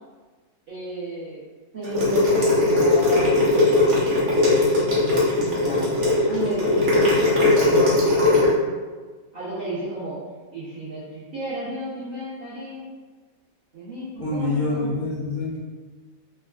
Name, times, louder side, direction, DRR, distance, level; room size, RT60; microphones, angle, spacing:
voice 1, 0.7-1.5 1.7-3.6 4.6-8.4 9.3-10.2 10.5-12.9 13.7-14.9, right 1 dB, 70° right, -11 dB, 0.5 m, -33 dB
sound 1, 1.8-8.5, left 2 dB, 50° right, 1.0 m, -19 dB
voice 2, 14.2-15.6, left 2 dB, 15° left, -10 dB, 0.5 m, -26 dB
3.4 x 2.2 x 2.2 m, 1.4 s
omnidirectional pair, 1.9 m